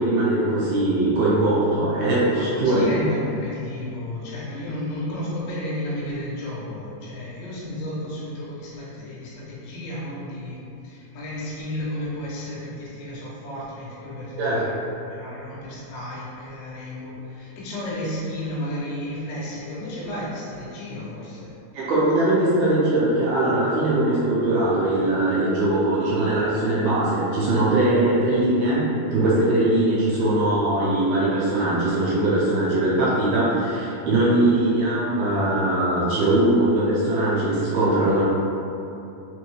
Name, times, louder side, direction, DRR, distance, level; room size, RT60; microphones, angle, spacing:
voice 1, 0.0-2.8 14.4-14.6 21.7-38.2, right 1 dB, 75° right, -8 dB, 2.5 m, -21 dB
voice 2, 2.3-14.7 15.0-21.6 34.2-34.4, left 1 dB, 85° left, -7 dB, 3.0 m, -32 dB
6.3 x 2.1 x 3.0 m, 2.7 s
omnidirectional pair, 4.7 m